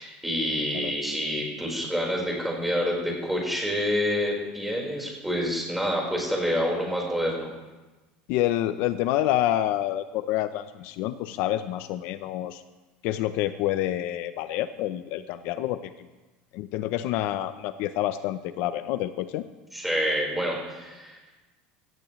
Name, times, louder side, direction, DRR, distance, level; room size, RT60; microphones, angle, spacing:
voice 1, 0.0-7.5 19.7-21.2, equal, 5° right, -2 dB, 4.4 m, -27 dB
voice 2, 8.3-12.6 13.0-15.9 16.5-19.4, left 13 dB, 65° left, 11 dB, 0.6 m, -28 dB
17.0 x 15.5 x 3.1 m, 1.2 s
cardioid pair, 140°, 4 cm